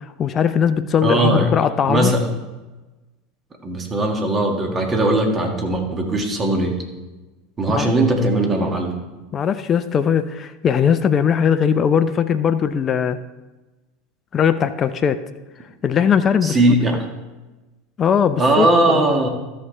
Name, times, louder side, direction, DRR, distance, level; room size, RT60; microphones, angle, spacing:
voice 1, 0.2-2.1 7.7-7.9 9.3-13.2 14.3-15.2 15.8-16.6 18.0-19.0, left 7 dB, 35° left, 10 dB, 0.5 m, -19 dB
voice 2, 1.0-1.5 1.9-2.3 3.6-6.8 7.6-9.0 16.4-17.0 18.4-19.3, right 1 dB, 25° right, 2 dB, 1.8 m, -19 dB
13.5 x 6.7 x 3.2 m, 1.1 s
hypercardioid pair, 80°, 0 cm